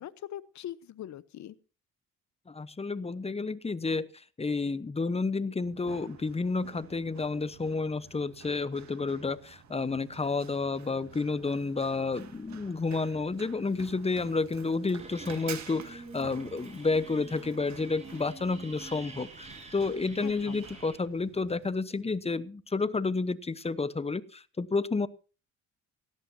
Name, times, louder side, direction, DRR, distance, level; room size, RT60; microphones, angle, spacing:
voice 1, 0.0-1.6 20.2-20.7, left 12 dB, 65° left, 17 dB, 1.0 m, -42 dB
voice 2, 2.5-4.1 4.4-25.1, left 3 dB, 20° left, 15 dB, 1.0 m, -30 dB
Run, 5.6-21.7, right 9 dB, 65° right, 2.0 m, -50 dB
sound 1, 15.0-21.0, right 2 dB, 20° right, 7.4 m, -47 dB
17.5 x 17.0 x 2.8 m, 0.35 s
cardioid pair, 90°, 30 cm